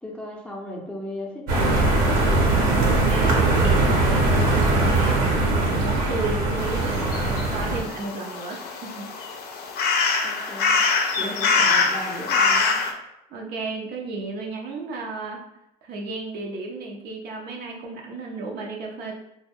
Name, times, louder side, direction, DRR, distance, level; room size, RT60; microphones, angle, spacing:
voice 1, 0.0-2.3 10.2-10.8 11.2-12.8, left 1 dB, 5° left, -2 dB, 0.6 m, -36 dB
sound 1, 1.5-7.8, right 2 dB, 75° right, 1.0 m, -21 dB
voice 2, 2.9-9.1 11.2-11.3 13.3-15.4 15.8-19.1, right 3 dB, 60° right, 0 dB, 0.6 m, -33 dB
sound 2, 6.6-12.9, left 4 dB, 60° left, 0.5 m, -24 dB
2.2 x 2.1 x 3.4 m, 0.86 s
supercardioid pair, 80°, 19 cm